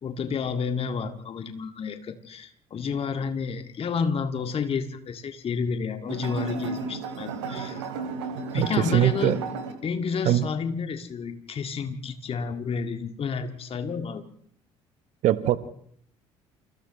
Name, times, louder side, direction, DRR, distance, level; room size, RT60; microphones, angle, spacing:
voice 1, 0.0-7.8 8.5-9.4 9.8-14.2, left 5 dB, 40° left, 2.0 m, -30 dB
sound 1, 6.1-9.7, right 4 dB, 75° right, 2.8 m, -33 dB
voice 2, 8.5-9.4 10.3-10.4 15.2-15.6, right 13 dB, 55° right, 1.1 m, -22 dB
29.5 x 28.5 x 3.1 m
figure-of-eight pair, 55°, 15 cm